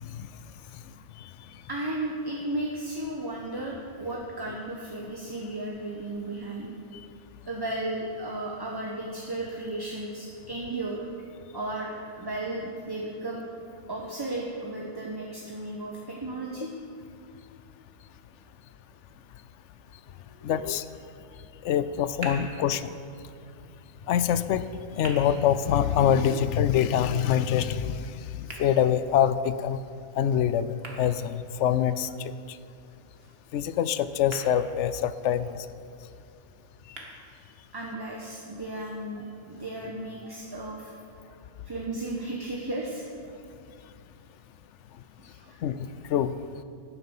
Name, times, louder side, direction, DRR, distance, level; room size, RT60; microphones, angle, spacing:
voice 1, 1.7-6.7 7.4-11.1 11.5-13.4 13.9-16.7 20.3-20.5 37.7-41.0 41.7-43.1 45.2-45.9, right 2 dB, 20° right, -2 dB, 1.0 m, -34 dB
voice 2, 20.4-20.8 21.6-22.9 24.1-24.7 25.0-28.1 28.4-29.8 30.2-32.3 33.5-35.6 45.6-46.3, left 9 dB, 75° left, 14 dB, 0.9 m, -25 dB
sound 1, 21.8-37.8, right 2 dB, 55° right, 2.0 m, -49 dB
11.5 x 9.5 x 7.2 m, 2.5 s
omnidirectional pair, 1.3 m